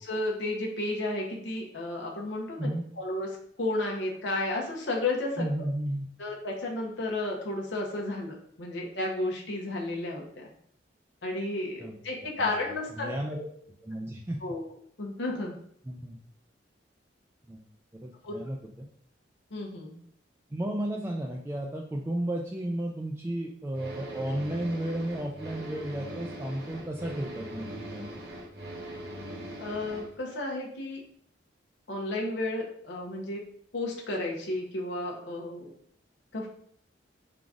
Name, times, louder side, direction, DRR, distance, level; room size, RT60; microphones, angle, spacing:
voice 1, 0.0-2.7 3.0-3.3 3.6-5.5 6.2-10.5 11.2-13.4 14.4-14.6 15.0-15.6 18.2-18.3 19.5-20.0 29.6-31.0 31.9-33.4 33.7-35.7 36.3-36.5, left 2 dB, 70° left, -1 dB, 0.8 m, -32 dB
voice 2, 5.4-6.1 11.8-12.0 12.4-12.5 13.0-13.4 13.8-14.4 15.8-16.2 17.5-17.6 18.0-18.9 20.5-28.1, right 1 dB, 15° right, 0 dB, 0.3 m, -33 dB
sound 1, 23.7-30.1, right 1 dB, 60° right, 0.8 m, -41 dB
3.8 x 2.4 x 4.6 m, 0.64 s
head